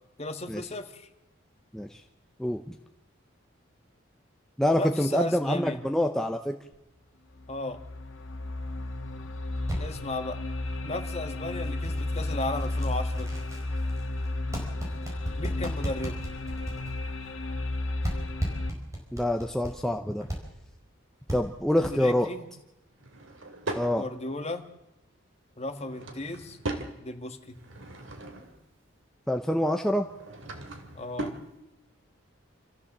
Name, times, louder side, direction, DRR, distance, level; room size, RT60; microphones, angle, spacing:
voice 1, 0.2-1.1 4.7-5.8 7.5-7.8 9.8-10.4 10.8-13.4 15.4-16.2 21.8-22.5 24.0-24.7 25.6-26.6 27.0-27.6 30.9-31.3, left 2 dB, 30° left, 7 dB, 1.6 m, -35 dB
voice 2, 2.4-2.7 4.6-6.5 19.1-20.3 21.3-22.3 23.7-24.0 29.3-30.1, left 1 dB, ahead, 4 dB, 0.8 m, -26 dB
sound 1, 6.7-6.8 7.4-18.7, left 2 dB, 75° left, 2.0 m, -33 dB
sound 2, 9.6-9.8 10.5-10.6 11.2-17.8 18.0-19.7 20.2-20.4 20.8-20.9 21.3-21.4 21.8-22.2, right 1 dB, 15° right, 4.8 m, -36 dB
Drawer open or close / Wood, 22.9-23.9 25.6-26.9 27.5-28.6 29.9-31.5, right 2 dB, 70° right, 2.6 m, -38 dB
27.0 x 14.5 x 7.4 m, 0.96 s
head